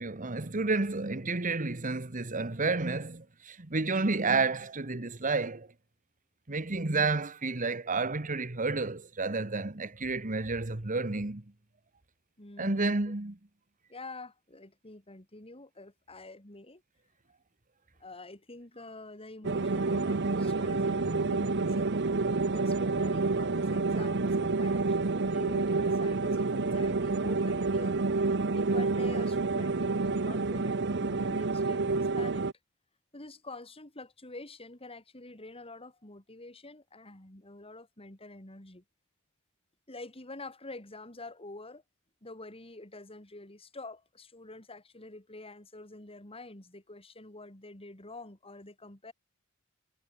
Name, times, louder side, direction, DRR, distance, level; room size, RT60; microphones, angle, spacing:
voice 1, 0.0-5.7 6.5-11.4 12.6-13.4, right 3 dB, 40° right, 1.4 m, -30 dB
voice 2, 12.4-13.2 13.9-16.8 18.0-21.9 22.4-28.0 28.5-32.5 33.1-38.8 39.9-41.8 42.2-49.1, left 2 dB, 30° left, 3.9 m, -47 dB
sound 1, 19.4-32.5, right 3 dB, 55° right, 0.9 m, -28 dB
head